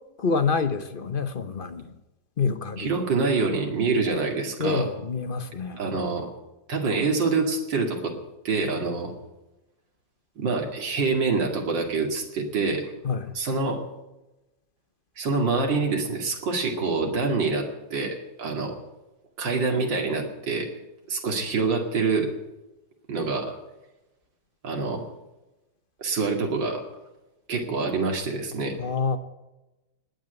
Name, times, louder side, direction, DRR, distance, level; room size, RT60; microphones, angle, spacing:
voice 1, 0.2-2.0 2.4-2.9 4.6-5.8 13.0-13.3 28.8-29.2, left 5 dB, 40° left, 10 dB, 0.8 m, -27 dB
voice 2, 2.8-4.9 5.8-6.3 6.7-8.2 8.4-9.1 10.4-12.9 13.3-13.8 15.2-18.8 19.4-20.7 21.1-22.3 23.1-23.6 24.6-25.1 26.0-26.8 27.5-28.8, right 4 dB, 80° right, 2 dB, 3.0 m, -26 dB
19.5 x 9.2 x 8.0 m, 1.0 s
omnidirectional pair, 2.0 m